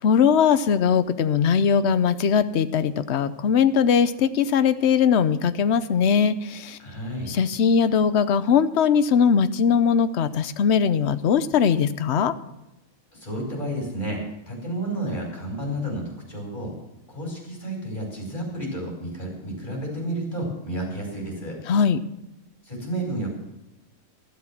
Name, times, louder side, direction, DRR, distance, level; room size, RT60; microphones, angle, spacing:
voice 1, 0.0-6.8 7.3-12.3 21.7-22.0, left 7 dB, 60° left, 12 dB, 1.0 m, -20 dB
voice 2, 6.8-7.4 13.1-16.7 17.1-21.6 22.6-23.3, right 1 dB, 30° left, -2 dB, 5.0 m, -31 dB
14.0 x 12.0 x 5.9 m, 0.95 s
omnidirectional pair, 1.4 m